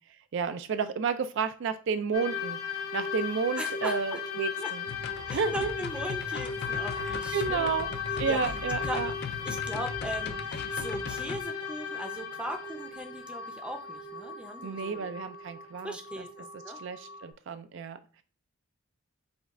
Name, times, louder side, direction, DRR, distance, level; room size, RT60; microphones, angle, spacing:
voice 1, 0.3-4.8 5.3-5.7 7.0-7.9 8.2-9.1 14.6-16.2 16.8-18.2, right 5 dB, 60° right, 10 dB, 0.4 m, -32 dB
sound 1, 2.1-17.3, left 6 dB, 85° left, 1.1 m, -36 dB
voice 2, 3.6-4.2 4.6-4.7 5.3-7.8 8.3-8.4 8.8-9.0 9.4-15.1 15.8-16.8, right 1 dB, 5° right, 4 dB, 0.5 m, -39 dB
sound 2, 4.9-11.4, left 5 dB, 50° left, 0.4 m, -39 dB
5.2 x 2.3 x 3.6 m, 0.39 s
head